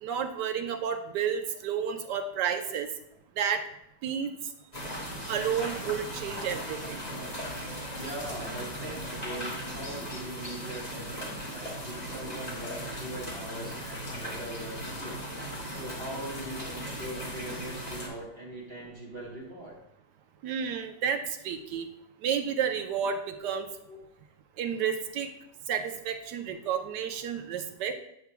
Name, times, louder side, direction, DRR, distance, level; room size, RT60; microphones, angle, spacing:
voice 1, 0.0-2.9 3.4-3.6 4.0-4.3 5.3-7.0 20.4-21.9 22.2-23.7 24.6-25.3 25.7-27.9, right 7 dB, 75° right, 7 dB, 1.3 m, -31 dB
sound 1, 4.7-18.1, equal, 25° left, 1.6 m, -38 dB
voice 2, 8.0-15.2 15.7-19.8 23.4-23.5 23.9-24.0, right 1 dB, 35° right, -4 dB, 1.8 m, -41 dB
9.4 x 6.9 x 2.3 m, 0.76 s
omnidirectional pair, 1.9 m